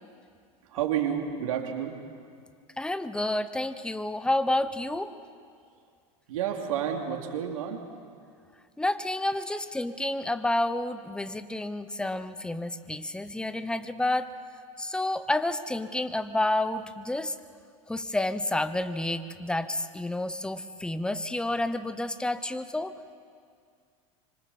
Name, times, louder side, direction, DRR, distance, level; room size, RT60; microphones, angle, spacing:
voice 1, 0.6-2.0 6.3-7.8, right 9 dB, 85° right, 2 dB, 2.8 m, -30 dB
voice 2, 2.8-5.1 8.8-14.3 14.8-17.4 17.9-22.9, left 1 dB, 5° left, 12 dB, 0.9 m, -29 dB
25.5 x 25.0 x 4.3 m, 2.2 s
supercardioid pair, 110°, 17 cm